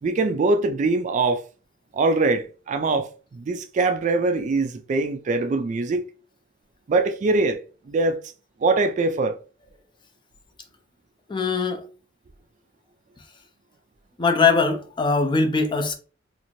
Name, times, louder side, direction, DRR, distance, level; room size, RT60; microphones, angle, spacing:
voice 1, 0.0-1.4 1.9-6.0 6.9-7.6 7.9-8.2 8.6-9.4, right 3 dB, 40° right, 0.3 m, -22 dB
voice 2, 11.3-11.8 14.2-15.9, left 4 dB, 25° left, 0.4 m, -21 dB
2.6 x 2.5 x 3.0 m
head